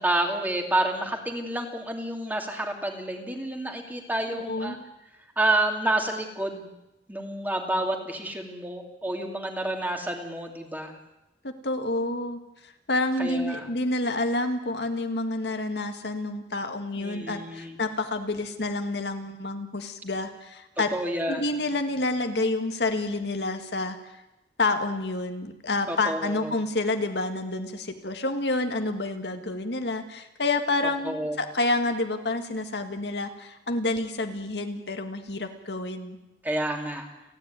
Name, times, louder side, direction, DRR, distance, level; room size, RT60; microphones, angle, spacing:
voice 1, 0.0-4.8 5.4-6.7 7.1-11.0 13.2-13.7 16.9-17.8 20.9-21.5 25.9-26.6 31.0-31.4 36.4-37.1, right 1 dB, 10° right, 3 dB, 2.6 m, -29 dB
voice 2, 4.4-4.8 11.4-20.9 21.3-24.1 24.6-36.2, left 2 dB, 70° left, 6 dB, 1.8 m, -29 dB
29.5 x 10.5 x 9.5 m, 0.94 s
head